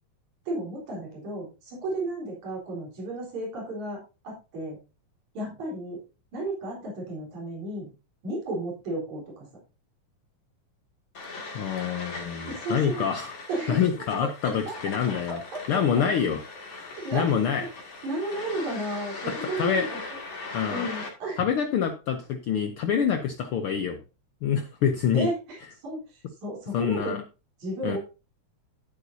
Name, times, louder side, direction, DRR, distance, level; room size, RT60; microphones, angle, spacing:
voice 1, 0.5-4.8 5.3-6.0 6.3-7.9 8.2-9.5 12.5-13.0 13.5-13.8 14.4-14.5 15.3-15.8 17.0-17.7 18.0-20.0 20.7-21.4 25.1-27.2 27.6-28.0, right 2 dB, 70° right, -3 dB, 5.3 m, -33 dB
sound 1, 11.1-21.1, left 3 dB, 40° left, 3.0 m, -39 dB
voice 2, 11.5-13.3 13.7-15.4 15.7-16.4 16.7-17.6 19.6-19.9 20.5-20.9 21.4-24.0 24.4-25.3 26.7-27.2 27.8-28.0, left 7 dB, 90° left, 7 dB, 1.2 m, -26 dB
13.0 x 8.1 x 2.7 m, 0.30 s
omnidirectional pair, 3.5 m